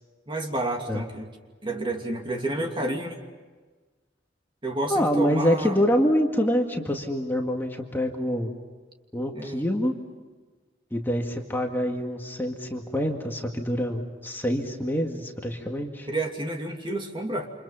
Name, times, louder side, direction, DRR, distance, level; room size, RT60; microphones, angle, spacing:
voice 1, 0.3-1.3 1.6-3.1 4.6-5.8 9.3-9.6 16.1-17.5, right 1 dB, 25° right, 2 dB, 2.8 m, -30 dB
voice 2, 4.9-8.5 9.1-9.9 10.9-16.1, equal, 10° left, 2 dB, 2.1 m, -26 dB
29.0 x 27.5 x 5.8 m, 1.3 s
head